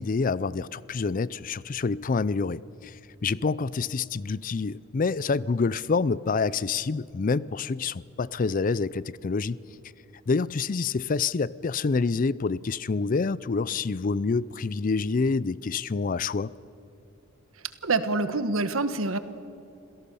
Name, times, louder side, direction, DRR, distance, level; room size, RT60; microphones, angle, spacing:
voice 1, 0.0-9.6 10.3-16.5, left 4 dB, 40° left, 0.4 m, -27 dB
voice 2, 17.8-19.2, right 3 dB, 80° right, 1.4 m, -26 dB
27.0 x 17.0 x 6.9 m
head